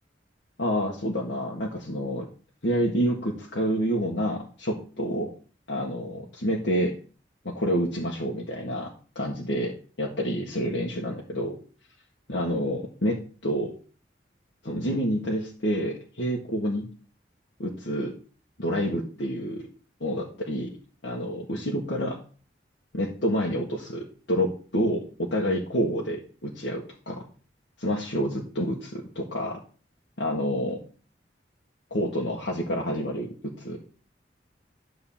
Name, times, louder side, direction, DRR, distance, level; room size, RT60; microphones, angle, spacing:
voice 1, 0.6-2.3 2.6-5.3 5.7-6.9 7.4-11.6 12.3-13.7 14.6-16.9 17.6-18.1 18.6-19.6 20.0-20.7 21.0-22.2 22.9-27.2 27.8-29.6 30.2-30.8 31.9-33.8, equal, 70° left, -2 dB, 1.6 m, -28 dB
11.0 x 3.8 x 7.3 m, 0.39 s
head